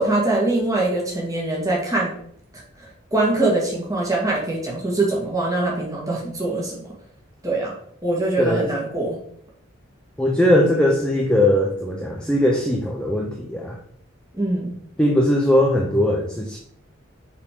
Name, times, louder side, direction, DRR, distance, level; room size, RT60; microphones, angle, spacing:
voice 1, 0.0-2.1 3.1-6.9 7.4-7.7 8.0-9.2 14.3-14.7, right 2 dB, 15° right, -3 dB, 1.8 m, -23 dB
voice 2, 10.2-13.8 15.0-16.6, left 1 dB, 5° left, 0 dB, 0.6 m, -19 dB
5.9 x 4.2 x 5.1 m, 0.66 s
head